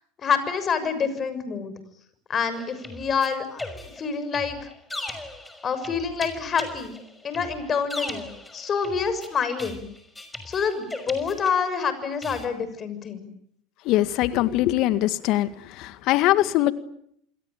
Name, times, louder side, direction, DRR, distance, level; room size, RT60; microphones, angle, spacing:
voice 1, 0.2-1.7 2.3-4.7 5.6-7.0 7.2-9.9 10.4-13.3, left 6 dB, 35° left, 12 dB, 6.7 m, -27 dB
sound 1, 2.5-11.8 12.2-12.5, left 2 dB, 10° left, 5.8 m, -38 dB
voice 2, 13.9-15.5 15.8-16.7, left 15 dB, 55° left, 13 dB, 1.9 m, -22 dB
28.0 x 22.0 x 9.0 m, 0.72 s
hypercardioid pair, 85°, 0 cm